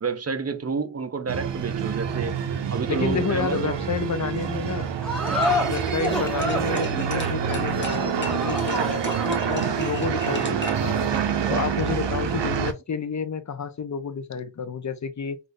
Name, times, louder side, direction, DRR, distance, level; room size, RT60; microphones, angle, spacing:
voice 1, 0.0-2.4 2.7-3.8, right 5 dB, 35° right, 0.6 m, -29 dB
sound 1, 1.3-12.7, right 7 dB, 90° right, 0.6 m, -27 dB
voice 2, 2.9-4.9 5.6-11.1 11.5-15.4, left 6 dB, 45° left, 0.6 m, -30 dB
sound 2, 5.0-11.7, left 1 dB, ahead, 0.9 m, -30 dB
sound 3, 5.1-10.9, left 2 dB, 25° left, 1.0 m, -40 dB
3.3 x 2.5 x 2.6 m
cardioid pair, 50°, 42 cm